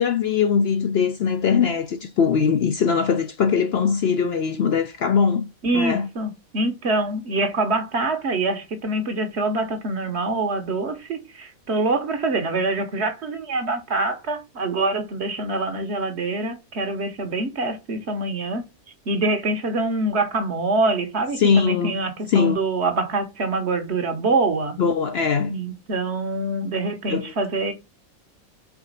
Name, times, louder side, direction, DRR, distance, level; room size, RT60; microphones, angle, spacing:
voice 1, 0.0-5.5 5.7-6.1 21.4-22.0 22.3-22.6 24.8-25.5 27.1-27.3, left 6 dB, 60° left, 0.7 m, -21 dB
voice 2, 5.6-18.6 19.1-24.8 25.5-27.7, right 2 dB, 55° right, 1.2 m, -25 dB
4.8 x 3.8 x 5.2 m
omnidirectional pair, 1.4 m